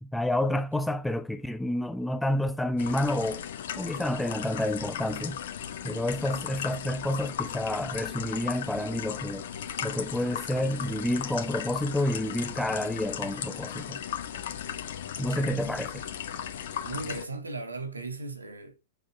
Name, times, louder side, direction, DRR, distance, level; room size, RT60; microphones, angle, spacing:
voice 1, 0.0-3.4 3.7-5.4 5.8-9.4 9.8-14.0 15.2-15.9, left 1 dB, 5° left, 0.7 m, -29 dB
sound 1, 2.8-17.2, left 9 dB, 60° left, 1.6 m, -36 dB
voice 2, 15.2-15.7 16.8-18.9, right 3 dB, 85° right, 1.9 m, -38 dB
7.7 x 6.9 x 3.2 m
figure-of-eight pair, 100°, 0 cm